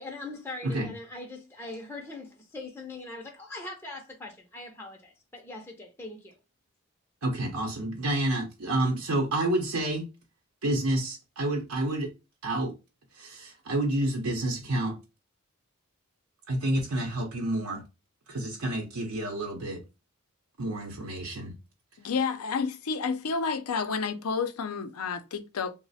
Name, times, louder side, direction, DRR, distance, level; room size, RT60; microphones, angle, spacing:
voice 1, 0.0-6.4, left 2 dB, 10° left, 0.4 m, -41 dB
voice 2, 7.2-10.0 10.6-12.1 12.4-12.7 13.1-15.0 16.5-17.8 18.3-19.8 20.6-21.5, right 1 dB, 90° right, 0.7 m, -29 dB
voice 3, 22.0-25.7, left 5 dB, 90° left, 0.5 m, -30 dB
3.1 x 2.1 x 3.9 m
head